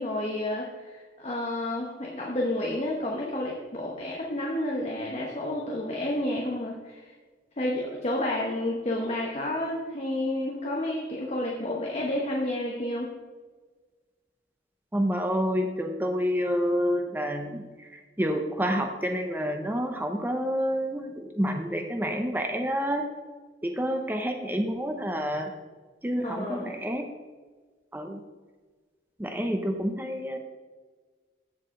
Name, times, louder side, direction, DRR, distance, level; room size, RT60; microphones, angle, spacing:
voice 1, 0.0-7.1 7.6-13.1 26.2-26.7, left 1 dB, 35° left, -2 dB, 1.0 m, -30 dB
voice 2, 14.9-23.1 23.6-25.5 26.0-27.1 27.9-28.2 29.2-30.4, equal, 10° right, 4 dB, 0.6 m, -28 dB
14.5 x 4.8 x 3.8 m, 1.4 s
head